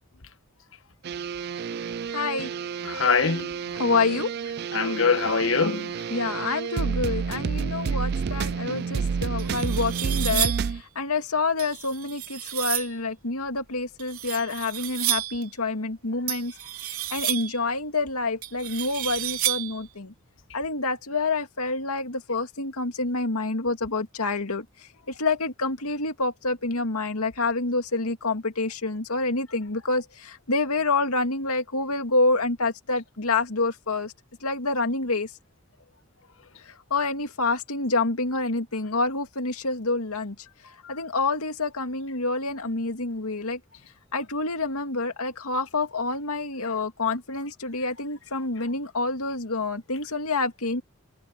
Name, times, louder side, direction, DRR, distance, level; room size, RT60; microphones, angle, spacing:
sound 1, 1.0-10.8, right 6 dB, 45° right, 0.3 m, -30 dB
voice 1, 2.1-2.5 3.8-4.3 6.1-16.5 17.1-20.1 20.5-24.9 25.2-34.1 34.4-35.3 36.7-40.4 40.6-43.6 44.1-50.8, left 3 dB, 85° left, 2.3 m, -27 dB
voice 2, 2.8-3.6 4.7-6.0, left 5 dB, 60° left, 1.3 m, -23 dB
sound 2, 8.9-9.0 9.4-10.8 11.6-13.0 14.0-15.5 16.3-17.6 18.4-19.8, right 13 dB, 80° right, 3.4 m, -31 dB
head